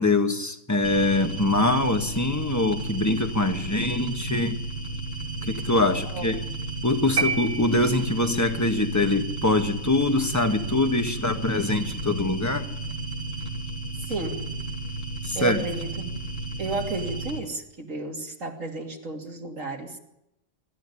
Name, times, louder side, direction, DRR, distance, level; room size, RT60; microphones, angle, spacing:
voice 1, 0.0-4.6 5.4-6.4 6.8-12.7 15.2-15.6, left 2 dB, 15° left, 6 dB, 1.5 m, -24 dB
sound 1, 0.8-17.4, right 2 dB, 70° left, 3.6 m, -33 dB
sound 2, 7.2-8.4, right 4 dB, 60° right, 2.1 m, -28 dB
voice 2, 14.1-14.4 15.3-16.2 16.6-20.0, right 3 dB, 80° right, 2 dB, 3.1 m, -33 dB
25.0 x 13.0 x 9.9 m, 0.87 s
omnidirectional pair, 1.3 m